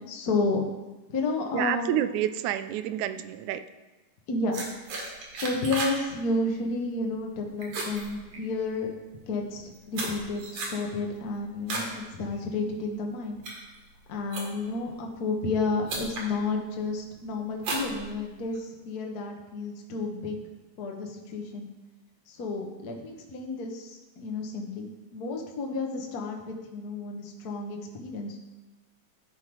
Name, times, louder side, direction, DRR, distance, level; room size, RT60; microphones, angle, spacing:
voice 1, 0.1-0.6 1.1-1.9 4.3-4.6 5.4-8.9 9.3-13.4 14.1-20.4 20.8-21.7 22.3-28.5, left 3 dB, 55° left, 1 dB, 1.1 m, -31 dB
voice 2, 1.5-3.6, right 11 dB, 85° right, 12 dB, 2.0 m, -29 dB
sound 1, 4.5-6.0 6.3-6.6 7.0-7.3 7.6-8.8 9.4-11.9 12.3-12.7 13.2-14.8 15.5-15.6 15.9-16.3 16.8-17.1 17.6-18.6, right 3 dB, 60° right, 2.7 m, -35 dB
13.5 x 5.6 x 4.7 m, 1.2 s
omnidirectional pair, 3.4 m